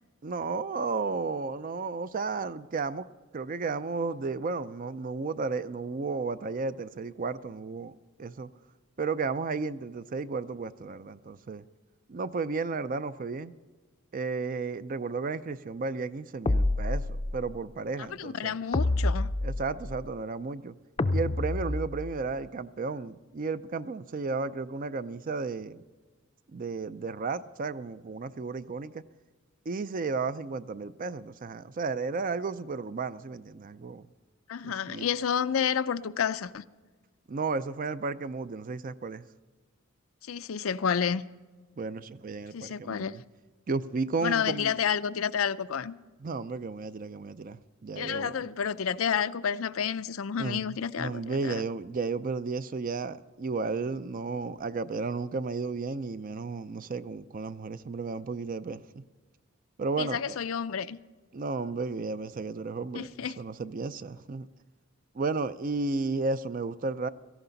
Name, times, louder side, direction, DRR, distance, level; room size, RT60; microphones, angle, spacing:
voice 1, 0.2-3.1 3.3-7.9 8.2-8.5 9.0-11.6 12.1-13.5 14.1-17.0 17.3-18.6 19.4-20.7 21.1-25.8 26.5-29.0 29.7-34.1 34.6-35.0 37.3-39.2 41.8-43.2 43.7-44.7 46.2-48.5 50.4-50.6 51.0-59.0 59.8-60.4 61.3-63.1 63.4-64.5 65.1-67.1, right 4 dB, 40° right, 0.5 m, -33 dB
sound 1, 16.5-17.5 18.7-20.0 21.0-22.2, left 2 dB, 30° left, 0.5 m, -28 dB
voice 2, 18.0-19.3 34.5-36.6 40.2-41.2 42.5-43.2 44.2-45.9 47.9-51.6 60.0-61.0 62.9-63.4, left 7 dB, 85° left, 0.5 m, -30 dB
17.0 x 14.0 x 4.0 m
head